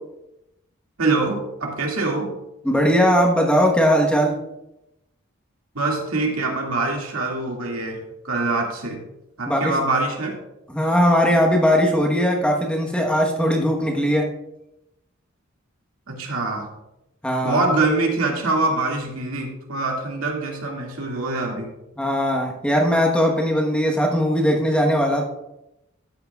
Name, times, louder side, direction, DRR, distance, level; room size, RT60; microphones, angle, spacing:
voice 1, 1.0-2.3 5.7-9.0 9.4-10.4 16.1-16.7 17.4-21.7, right 3 dB, 90° right, 0 dB, 2.0 m, -24 dB
voice 2, 2.6-4.4 9.5-9.7 10.7-14.3 17.2-17.6 22.0-25.2, equal, 5° left, 0 dB, 1.0 m, -19 dB
13.0 x 8.5 x 2.3 m, 0.90 s
head